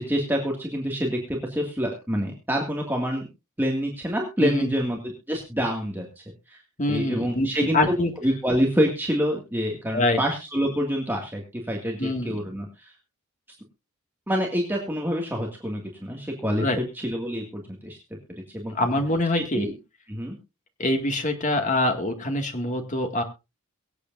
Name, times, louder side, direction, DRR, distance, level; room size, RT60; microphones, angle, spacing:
voice 1, 0.0-3.3 3.6-6.6 6.9-7.9 8.2-12.9 14.3-16.7 16.9-18.0 18.5-18.7 19.3-19.7 20.1-20.4, equal, 10° right, 0 dB, 2.0 m, -27 dB
voice 2, 4.4-4.7 6.8-8.1 9.9-10.2 12.0-12.4 16.6-16.8 18.7-19.7 20.8-23.2, left 1 dB, 35° left, 5 dB, 2.0 m, -24 dB
23.5 x 8.4 x 2.6 m, 0.27 s
head